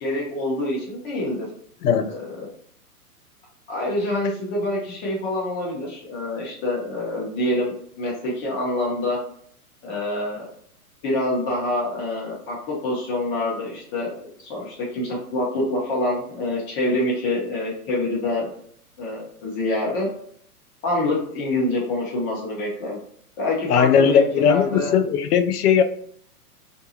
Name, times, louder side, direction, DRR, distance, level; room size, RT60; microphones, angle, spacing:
voice 1, 0.0-1.5 2.0-2.5 3.7-9.2 9.8-10.5 11.0-18.5 19.0-20.1 20.8-23.0 23.4-24.9, left 1 dB, 25° left, 0.9 m, -26 dB
voice 2, 23.7-25.8, left 7 dB, 75° left, 0.5 m, -18 dB
2.6 x 2.2 x 2.8 m
hypercardioid pair, 135°, 46 cm